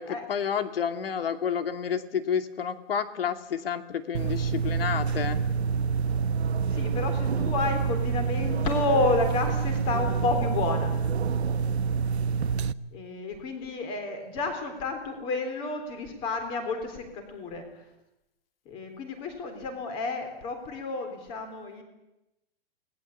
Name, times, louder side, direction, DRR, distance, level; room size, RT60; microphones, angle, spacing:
voice 1, 0.0-5.4, left 7 dB, 65° left, 8 dB, 2.7 m, -30 dB
sound 1, 4.1-12.7, right 6 dB, 85° right, 1.1 m, -27 dB
voice 2, 6.7-11.0 12.9-17.7 18.7-21.8, left 3 dB, 15° left, 7 dB, 3.8 m, -30 dB
29.0 x 20.0 x 8.6 m, 0.92 s
hypercardioid pair, 180°, 31 cm